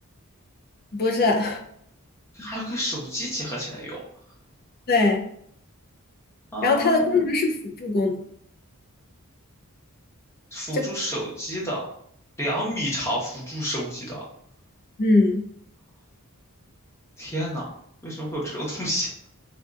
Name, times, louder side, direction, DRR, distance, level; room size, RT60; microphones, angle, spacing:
voice 1, 0.9-1.6 4.9-5.2 6.6-8.1 10.7-10.9 15.0-15.4, left 3 dB, 45° left, 3 dB, 0.5 m, -21 dB
voice 2, 2.3-4.0 6.5-7.2 10.5-11.9 12.4-14.2 17.2-17.7 18.0-19.1, equal, 10° left, -5 dB, 1.0 m, -30 dB
3.5 x 2.4 x 2.4 m, 0.67 s
head